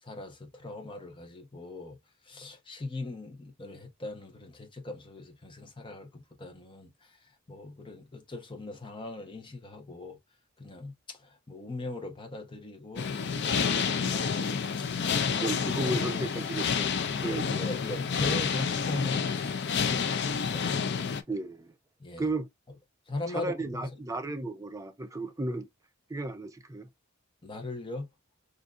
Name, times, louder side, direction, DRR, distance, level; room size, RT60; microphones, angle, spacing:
voice 1, 0.0-2.0 2.2-10.2 10.6-14.6 15.3-15.5 15.9-16.0 16.4-16.5 17.2-20.8 22.0-22.3 23.1-23.9 27.4-28.1, left 2 dB, 25° left, 0.8 m, -40 dB
sound 1, 13.0-21.2, left 6 dB, 55° left, 0.5 m, -29 dB
voice 2, 15.4-17.6 18.1-18.2 21.3-21.7 22.2-22.5 23.3-25.7 26.1-26.9, right 2 dB, 15° right, 0.5 m, -34 dB
3.8 x 2.6 x 2.4 m
head